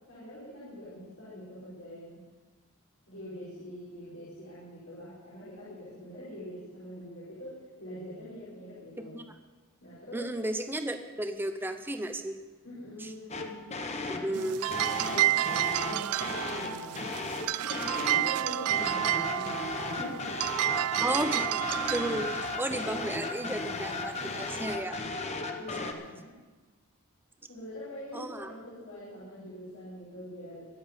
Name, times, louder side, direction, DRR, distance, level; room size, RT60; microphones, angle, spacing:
voice 1, 0.1-2.2 3.1-9.2 9.8-10.3 12.6-13.7 14.1-17.1 17.6-19.5 19.8-20.2 25.5-26.3 27.5-30.7, equal, 80° left, -10 dB, 4.8 m, -44 dB
voice 2, 10.1-12.3 13.0-13.1 14.1-14.7 21.0-21.6 21.9-25.0 28.1-28.5, right 1 dB, 10° right, 7 dB, 0.8 m, -33 dB
sound 1, 13.3-14.3 14.7-18.3 18.7-25.9, left 3 dB, 30° left, 1.0 m, -36 dB
sound 2, 14.3-24.7, right 14 dB, 85° right, 0.4 m, -31 dB
22.5 x 7.9 x 5.3 m, 1.3 s
head